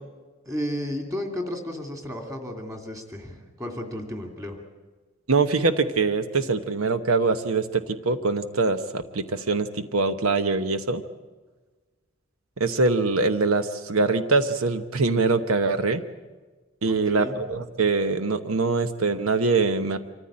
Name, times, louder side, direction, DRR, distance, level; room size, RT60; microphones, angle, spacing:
voice 1, 0.5-4.6 16.9-17.3, left 1 dB, 15° right, 4 dB, 2.5 m, -33 dB
voice 2, 5.3-11.0 12.6-16.0 16.8-20.0, right 3 dB, 90° right, 10 dB, 1.0 m, -23 dB
25.5 x 14.5 x 8.7 m, 1.3 s
head